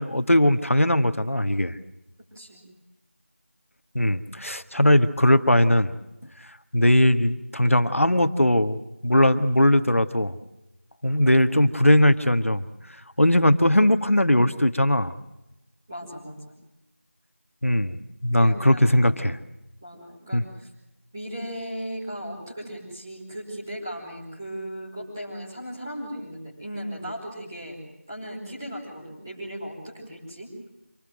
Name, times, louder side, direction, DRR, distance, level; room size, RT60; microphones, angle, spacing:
voice 1, 0.0-1.8 3.9-6.0 6.7-8.8 9.0-10.4 11.0-12.7 13.2-15.1 17.6-19.4 20.3-20.4, left 1 dB, 75° left, 10 dB, 1.8 m, -20 dB
voice 2, 2.3-2.7 15.9-16.5 18.3-19.2 19.8-20.7 21.1-27.8 28.1-30.5, equal, 15° right, -6 dB, 4.9 m, -37 dB
26.5 x 19.5 x 7.7 m, 0.94 s
figure-of-eight pair, 175°, 7 cm